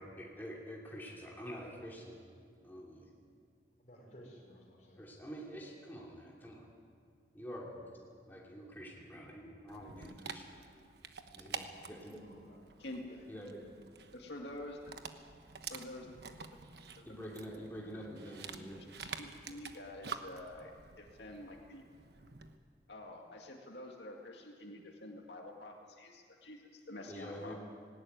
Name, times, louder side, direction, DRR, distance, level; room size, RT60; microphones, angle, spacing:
voice 1, 0.0-2.2 2.6-3.1 5.0-6.7 7.3-7.7 8.3-10.4 11.3-12.2 13.3-13.6 17.0-18.8 27.1-27.5, equal, 10° left, -3 dB, 2.9 m, -47 dB
voice 2, 3.8-5.3 12.1-13.3, equal, 40° left, -1 dB, 5.5 m, -57 dB
Dog, 9.7-22.6, right 5 dB, 65° right, 1.2 m, -49 dB
voice 3, 14.1-14.9 15.6-16.1 17.0-17.1 19.0-21.8 22.9-27.5, left 1 dB, 75° left, 0 dB, 2.1 m, -48 dB
18.5 x 18.5 x 9.5 m, 2.2 s
head